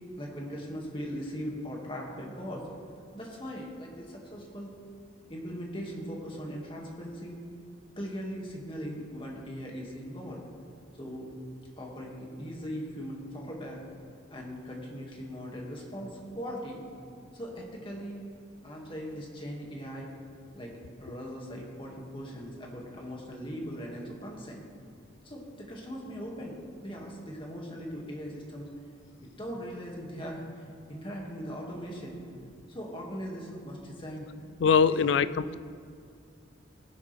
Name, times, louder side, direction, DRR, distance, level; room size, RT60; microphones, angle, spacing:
voice 1, 0.2-2.7 3.1-4.8 5.3-7.4 8.0-10.4 11.0-11.3 11.8-13.8 14.3-16.8 17.3-18.2 18.6-20.1 20.5-24.6 25.2-28.7 29.2-32.2 32.7-34.3 34.7-35.0 35.3-35.5, equal, 25° left, -2 dB, 2.1 m, -39 dB
voice 2, 34.6-35.6, left 6 dB, 70° left, 16 dB, 0.3 m, -23 dB
19.0 x 10.0 x 3.4 m, 2.3 s
head